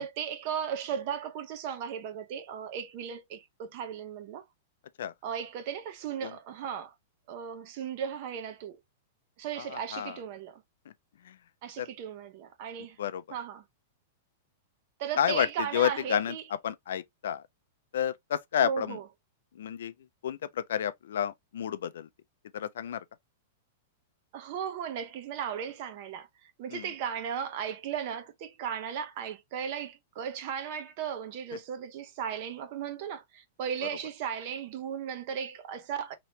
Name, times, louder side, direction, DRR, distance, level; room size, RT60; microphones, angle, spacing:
voice 1, 0.0-4.4 5.2-6.9 7.3-8.8 9.4-10.6 11.6-13.0 13.3-13.6 15.0-16.4 18.6-19.0 24.3-36.1, right 8 dB, 35° right, 0.6 m, -36 dB
voice 2, 9.6-10.2 11.2-11.4 11.8-11.9 13.0-13.4 15.2-17.4 17.9-19.0 19.5-19.9 20.2-22.1 22.5-23.0 26.7-26.9 33.8-33.9, left 9 dB, 75° left, 0.4 m, -31 dB
3.2 x 2.9 x 2.7 m
supercardioid pair, 175°, 0 cm